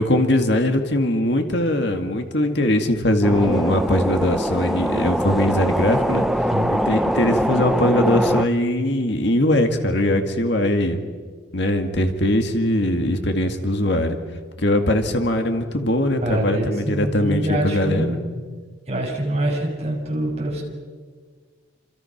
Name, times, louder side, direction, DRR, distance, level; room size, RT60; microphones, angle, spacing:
voice 1, 0.0-6.3 6.7-11.0 11.5-14.2 14.6-18.2, left 1 dB, 60° left, 5 dB, 2.1 m, -21 dB
sound 1, 3.2-8.5, equal, ahead, 0.9 m, -22 dB
voice 2, 16.2-18.2 18.9-20.6, right 1 dB, 35° right, -1 dB, 6.7 m, -24 dB
29.0 x 27.0 x 6.0 m, 1.6 s
head